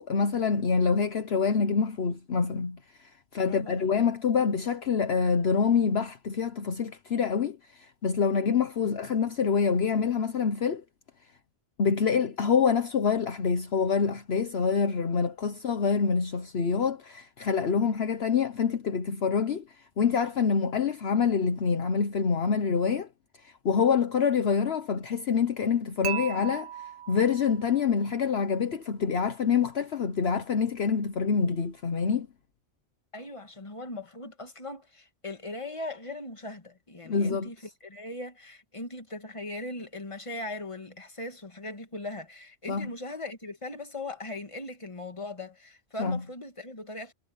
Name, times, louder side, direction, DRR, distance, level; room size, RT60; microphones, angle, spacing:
voice 1, 0.0-10.8 11.8-19.6 20.0-23.1 23.4-26.7 27.1-32.3 37.1-37.5 42.7-42.9 46.0-46.2, left 6 dB, 60° left, 1.2 m, -26 dB
voice 2, 3.4-3.9 8.8-8.9 33.1-37.6 37.8-47.1, left 2 dB, 25° left, 2.0 m, -39 dB
Dishes pots and pans / Chink clink, 26.0-28.2, right 11 dB, 75° right, 1.4 m, -37 dB
omnidirectional pair, 1.2 m